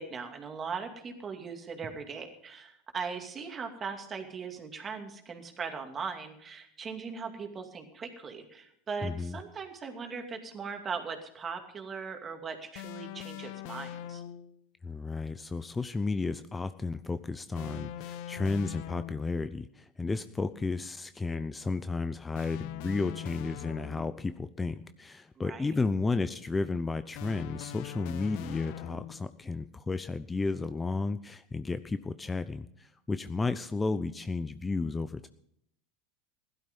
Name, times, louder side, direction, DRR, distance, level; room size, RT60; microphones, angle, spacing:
voice 1, 0.0-14.2 25.4-25.7, right 5 dB, 30° right, 5 dB, 2.5 m, -39 dB
voice 2, 9.0-9.4 14.8-35.3, left 3 dB, 15° left, 12 dB, 0.6 m, -33 dB
sound 1, 12.8-14.6 17.6-19.4 22.3-24.3 27.2-29.4, left 12 dB, 60° left, 0.7 m, -42 dB
16.0 x 12.0 x 5.4 m, 0.72 s
hypercardioid pair, 90°, 0 cm